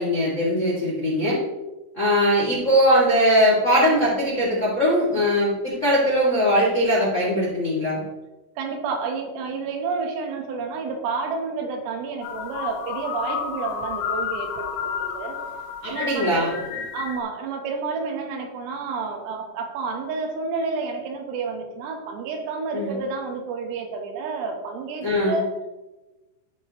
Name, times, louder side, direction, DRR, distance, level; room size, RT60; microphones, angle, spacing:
voice 1, 0.0-1.4 1.9-8.0 15.8-16.5 22.7-23.0 25.0-25.4, equal, 55° left, -7 dB, 0.8 m, -20 dB
voice 2, 8.6-15.4 15.9-16.5 16.9-25.5, right 4 dB, 85° right, 3 dB, 3.9 m, -30 dB
sound 1, 12.2-17.2, left 7 dB, 70° left, 3.3 m, -31 dB
14.5 x 5.0 x 3.1 m, 1.1 s
omnidirectional pair, 5.8 m